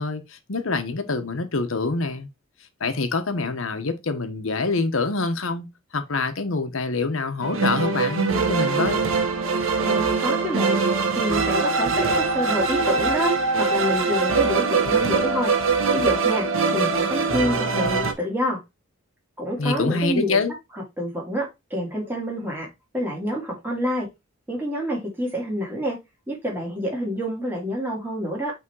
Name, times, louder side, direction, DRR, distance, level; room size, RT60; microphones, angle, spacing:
voice 1, 0.0-2.3 2.8-5.7 5.9-9.1 19.6-20.5, left 3 dB, 75° left, 1.0 m, -25 dB
sound 1, 7.4-18.1, right 4 dB, 75° right, 1.1 m, -22 dB
voice 2, 9.8-10.8 11.1-15.5 15.9-16.5 16.7-18.6 19.4-20.4 21.0-22.7 22.9-24.1 24.5-26.0 26.3-28.5, equal, 10° right, 2.6 m, -27 dB
6.1 x 3.5 x 4.6 m
head